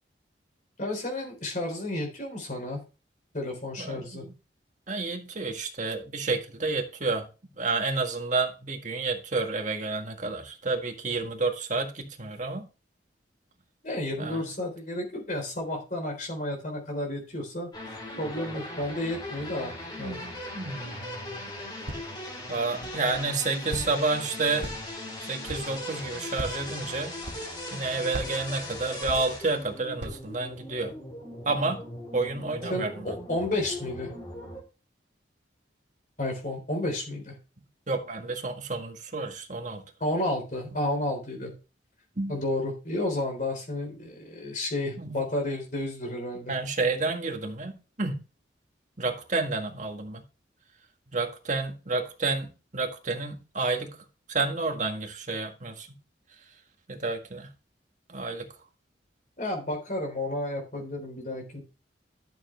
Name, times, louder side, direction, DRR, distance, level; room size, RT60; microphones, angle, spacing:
voice 1, 0.8-2.8 3.3-4.2 13.8-19.7 20.0-20.2 32.7-34.1 36.2-37.4 40.0-41.5 42.3-46.6 59.4-61.6, left 1 dB, 45° left, 3.7 m, -31 dB
voice 2, 3.8-4.3 4.9-7.2 7.5-12.7 14.2-14.4 20.0-21.4 22.5-24.7 25.2-27.1 27.7-30.9 31.5-31.8 32.1-32.9 37.9-39.8 42.2-42.3 45.0-45.2 46.5-47.7 48.0-48.2 49.0-50.2 51.1-54.0 54.3-55.9 56.9-57.5 58.1-58.5, right 3 dB, 40° right, 1.7 m, -30 dB
sound 1, 17.7-34.6, left 1 dB, 25° left, 3.6 m, -39 dB
Walk footsteps, 21.9-22.3 22.8-23.3 23.7-24.2 24.6-25.1 25.4-25.8 26.3-26.7 27.2-27.7 28.1-29.6 30.0-30.4, right 1 dB, 80° right, 1.6 m, -38 dB
12.0 x 7.1 x 3.3 m
head